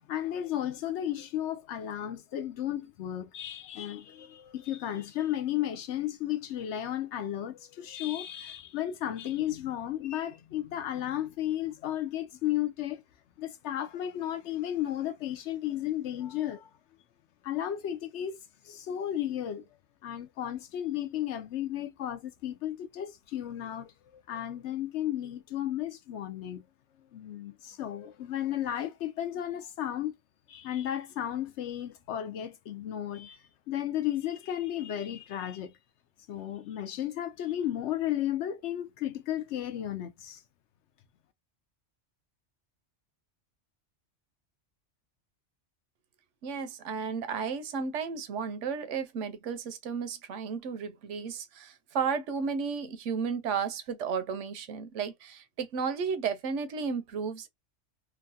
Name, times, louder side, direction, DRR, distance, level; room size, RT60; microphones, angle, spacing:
voice 1, 0.0-13.0 13.4-16.7 17.4-18.4 18.6-19.6 20.0-26.6 27.1-30.1 30.5-33.4 33.7-35.7 36.3-40.4, left 11 dB, 75° left, 0.9 m, -34 dB
voice 2, 46.4-57.5, right 6 dB, 80° right, 1.0 m, -33 dB
3.1 x 2.3 x 2.6 m
omnidirectional pair, 1.2 m